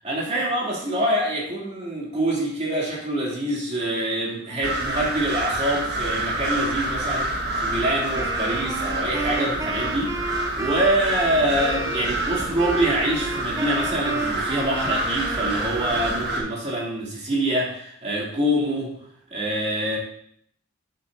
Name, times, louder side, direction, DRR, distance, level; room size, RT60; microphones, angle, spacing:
voice 1, 0.0-19.0 19.3-20.0, right 1 dB, 35° right, -4 dB, 2.9 m, -25 dB
sound 1, 4.6-16.4, right 1 dB, 55° right, 1.7 m, -28 dB
Wind instrument woodwind instrument, 8.1-16.5, right 3 dB, 15° right, 0.7 m, -32 dB
10.0 x 7.5 x 2.7 m, 0.68 s
head